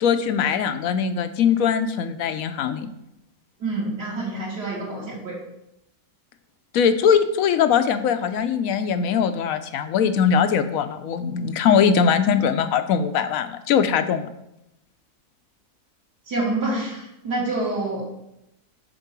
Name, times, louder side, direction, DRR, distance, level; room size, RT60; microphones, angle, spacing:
voice 1, 0.0-2.9 6.7-14.3, left 7 dB, 70° left, 9 dB, 0.9 m, -21 dB
voice 2, 3.6-5.3 16.3-18.1, right 2 dB, 90° right, -6 dB, 2.6 m, -27 dB
6.6 x 4.5 x 6.0 m, 0.85 s
omnidirectional pair, 1.7 m